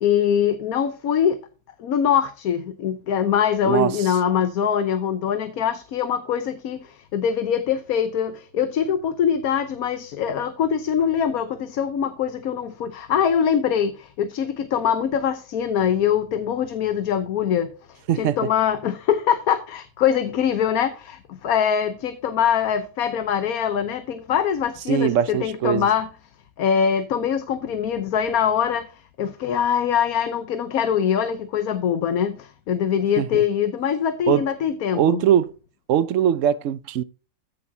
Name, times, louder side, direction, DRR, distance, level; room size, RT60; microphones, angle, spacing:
voice 1, 0.0-1.4 1.8-26.1 26.6-35.3, left 8 dB, 90° left, 1.3 m, -23 dB
voice 2, 24.9-25.9 33.2-33.4 34.3-34.4 34.9-35.5 35.9-37.0, right 10 dB, 65° right, 1.0 m, -21 dB
14.5 x 6.3 x 2.7 m
omnidirectional pair, 1.5 m